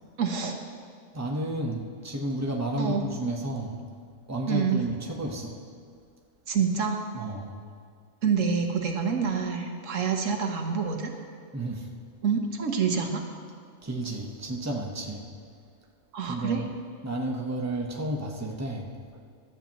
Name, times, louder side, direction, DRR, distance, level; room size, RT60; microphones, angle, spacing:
voice 1, 0.2-0.6 2.8-3.0 4.5-4.8 6.5-7.0 8.2-11.1 12.2-13.2 16.1-16.6, right 6 dB, 85° right, 3 dB, 1.5 m, -27 dB
voice 2, 1.1-3.8 4.3-5.6 7.1-7.5 11.5-11.9 13.8-15.2 16.2-16.7 17.0-19.2, right 1 dB, 15° right, 0 dB, 1.0 m, -32 dB
16.5 x 12.0 x 3.0 m, 2.3 s
omnidirectional pair, 1.3 m